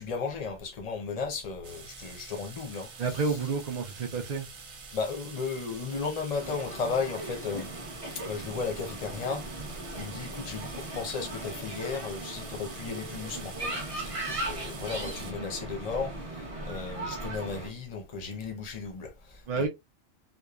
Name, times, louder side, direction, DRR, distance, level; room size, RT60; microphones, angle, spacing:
voice 1, 0.0-2.9 4.9-7.7 8.3-9.4 9.9-19.7, left 5 dB, 40° left, 0.7 m, -35 dB
sound 1, 1.6-15.3, right 5 dB, 85° right, 1.1 m, -47 dB
voice 2, 3.0-4.5 19.5-19.7, right 4 dB, 60° right, 0.4 m, -29 dB
sound 2, 6.4-17.7, right 1 dB, 30° right, 0.8 m, -38 dB
3.0 x 2.0 x 2.3 m
omnidirectional pair, 1.3 m